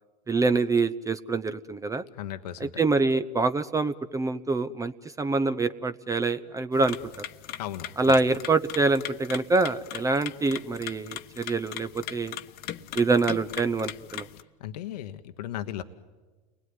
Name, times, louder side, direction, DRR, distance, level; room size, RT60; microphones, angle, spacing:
voice 1, 0.3-2.0 2.8-4.9 5.2-7.0 8.0-12.3 12.9-14.3, right 3 dB, 15° right, 11 dB, 0.8 m, -25 dB
voice 2, 2.1-2.7 7.6-8.4 14.6-15.8, left 11 dB, 80° left, 8 dB, 1.2 m, -36 dB
sound 1, 6.7-14.4, left 13 dB, 50° left, 1.2 m, -40 dB
30.0 x 20.5 x 9.6 m, 1.3 s
hypercardioid pair, 95°, 20 cm